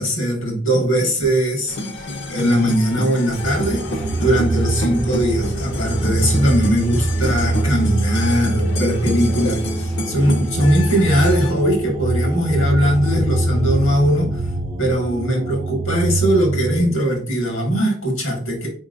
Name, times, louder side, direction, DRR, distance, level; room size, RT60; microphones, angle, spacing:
voice 1, 0.0-1.8 2.3-3.8 4.2-14.4 14.8-18.7, equal, 90° left, -2 dB, 1.9 m, -20 dB
sound 1, 1.7-11.5, left 1 dB, 55° left, 0.6 m, -29 dB
sound 2, 3.4-16.8, right 2 dB, 20° right, 0.4 m, -23 dB
sound 3, 7.5-14.4, left 2 dB, 75° right, 0.6 m, -38 dB
4.3 x 3.7 x 2.6 m, 0.43 s
head